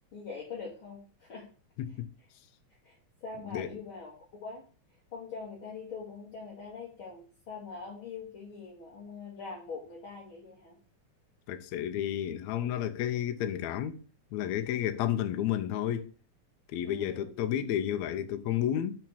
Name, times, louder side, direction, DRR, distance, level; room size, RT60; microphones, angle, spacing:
voice 1, 0.1-1.5 2.8-4.1 4.4-4.6 5.1-10.8 16.8-17.3, left 5 dB, 45° left, 2.9 m, -43 dB
voice 2, 1.8-2.1 3.5-3.8 11.5-14.0 14.3-16.1 16.7-19.0, left 10 dB, 75° left, 1.9 m, -31 dB
6.1 x 6.0 x 7.1 m
omnidirectional pair, 3.5 m